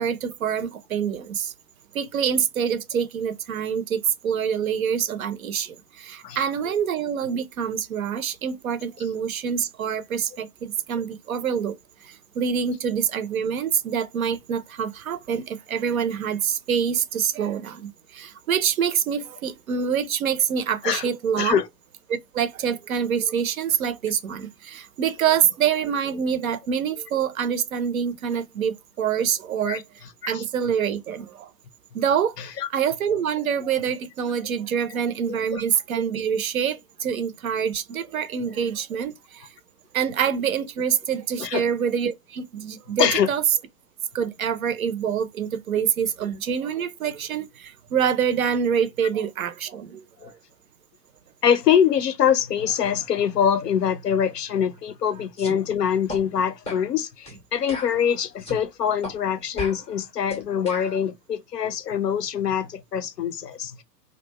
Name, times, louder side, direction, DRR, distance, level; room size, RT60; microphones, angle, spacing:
voice 1, 0.0-1.5 1.9-11.8 12.0-21.6 22.1-29.8 30.3-31.5 31.9-32.4 32.7-39.5 39.9-43.4 44.1-50.3, right 7 dB, 60° right, 0.5 m, -26 dB
voice 2, 32.4-32.7 35.5-35.6 41.4-41.6 43.0-43.3 50.2-50.3 51.4-63.8, left 8 dB, 75° left, 0.5 m, -24 dB
sound 1, 55.4-55.6 56.1-56.2 56.7-56.9 57.3-57.4 57.7-58.6 59.0-59.2 59.6-61.0, left 1 dB, 10° left, 0.4 m, -36 dB
2.5 x 2.2 x 2.8 m
figure-of-eight pair, 115°, 49 cm